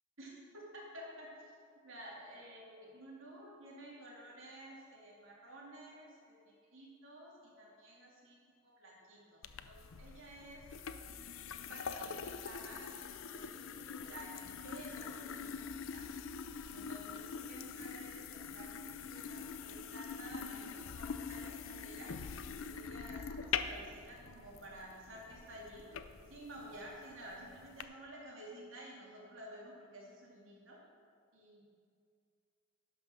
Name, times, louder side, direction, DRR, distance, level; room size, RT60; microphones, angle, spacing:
voice 1, 0.2-1.4 1.8-8.4 8.6-10.7 11.7-16.1 16.7-22.2 22.6-25.9 26.3-30.8 31.3-31.6, right 1 dB, 75° right, -4 dB, 2.7 m, -52 dB
sound 1, 9.4-27.8, left 6 dB, 80° left, 0.5 m, -44 dB
11.5 x 5.6 x 6.2 m, 2.2 s
head